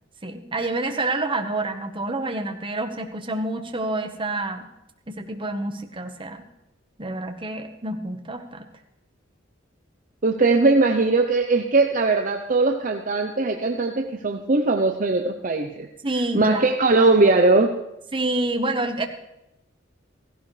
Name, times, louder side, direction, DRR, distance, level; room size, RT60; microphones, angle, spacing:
voice 1, 0.2-4.7 5.1-6.5 7.0-8.6 16.0-16.6 18.1-19.1, right 2 dB, 25° right, 4 dB, 1.3 m, -28 dB
voice 2, 10.2-15.9 16.3-17.7, right 3 dB, 45° right, 4 dB, 0.8 m, -20 dB
16.0 x 16.0 x 3.3 m, 0.90 s
head